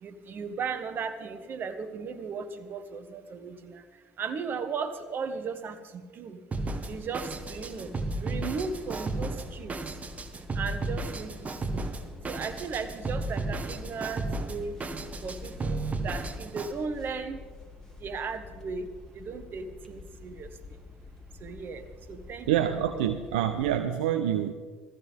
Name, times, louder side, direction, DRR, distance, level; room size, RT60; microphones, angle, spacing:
voice 1, 0.0-3.8 4.2-6.4 6.9-9.8 10.5-11.9 12.3-14.8 15.2-17.4 18.0-20.5 21.4-22.8, right 5 dB, 45° right, 9 dB, 1.3 m, -36 dB
Drum kit, 6.5-16.7, right 2 dB, 30° right, 1.3 m, -34 dB
sound 1, 6.7-23.7, left 4 dB, 10° left, 2.8 m, -47 dB
voice 2, 22.5-24.5, right 10 dB, 75° right, 6 dB, 0.6 m, -26 dB
18.0 x 14.5 x 3.6 m, 1.5 s
hypercardioid pair, 60°, 5 cm